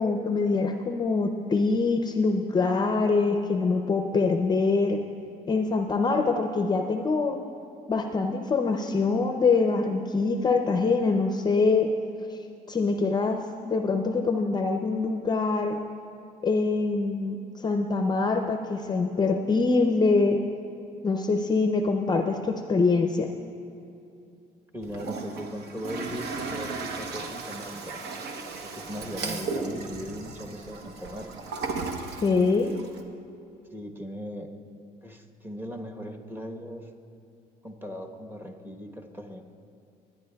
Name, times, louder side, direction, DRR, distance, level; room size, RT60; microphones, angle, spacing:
voice 1, 0.0-5.0 5.5-7.4 7.9-11.9 12.7-15.8 16.4-20.4 21.0-23.3 32.2-32.7, left 4 dB, 25° left, 4 dB, 0.5 m, -24 dB
voice 2, 24.7-28.1 28.7-31.3 33.7-34.5 35.0-36.9 37.6-39.4, equal, 10° right, 2 dB, 1.1 m, -38 dB
Toilet flush, 24.8-33.0, right 4 dB, 75° right, 0.9 m, -35 dB
23.0 x 9.8 x 2.3 m, 2.7 s
cardioid pair, 110°, 17 cm